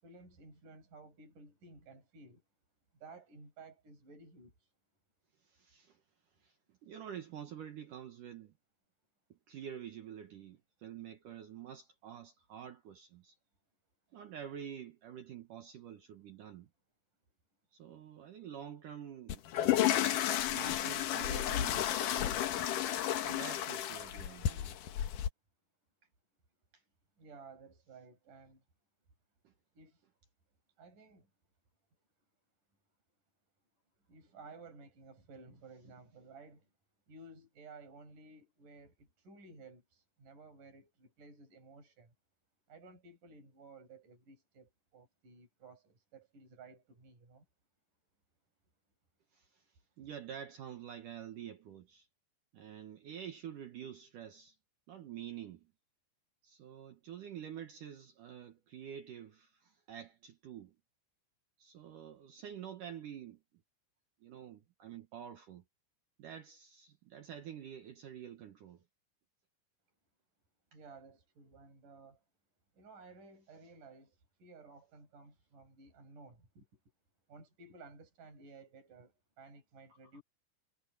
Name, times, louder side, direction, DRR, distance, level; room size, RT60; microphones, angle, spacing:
voice 1, 0.0-2.4 2.9-4.7 27.2-28.6 29.7-30.1 30.8-31.3 34.1-36.7 37.1-42.1 42.7-47.5 70.7-72.2 72.7-76.7 77.3-80.2, right 3 dB, 45° right, 9.5 m, -55 dB
voice 2, 5.5-6.0 6.4-6.5 6.8-8.5 9.3-13.4 14.1-16.7 17.7-19.9 20.5-22.6 23.2-24.7 49.3-49.6 50.0-52.1 52.5-54.6 54.9-55.7 56.4-60.7 61.6-63.4 64.2-65.6 66.2-68.8, right 9 dB, 65° right, 2.2 m, -48 dB
sound 1, 19.3-25.3, left 12 dB, 65° left, 2.2 m, -32 dB
omnidirectional pair, 5.3 m